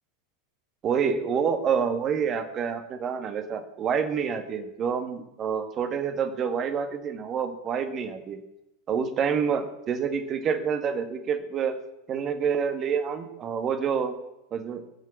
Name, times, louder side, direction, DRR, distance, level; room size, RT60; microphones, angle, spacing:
voice 1, 0.8-8.4 8.9-11.8 12.1-14.1 14.5-14.8, right 6 dB, 30° right, 8 dB, 2.0 m, -27 dB
22.0 x 7.6 x 7.2 m, 0.89 s
figure-of-eight pair, 85°, 0 cm